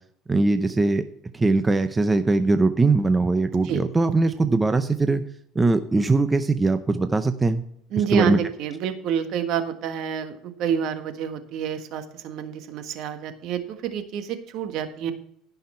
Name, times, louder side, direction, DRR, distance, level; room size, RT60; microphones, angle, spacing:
voice 1, 0.3-1.0 1.3-5.2 5.5-7.6 8.1-8.4, right 3 dB, 15° right, 9 dB, 0.6 m, -21 dB
voice 2, 7.9-15.1, right 8 dB, 60° right, 7 dB, 1.5 m, -28 dB
16.5 x 5.7 x 4.4 m, 0.68 s
cardioid pair, 125°, 0 cm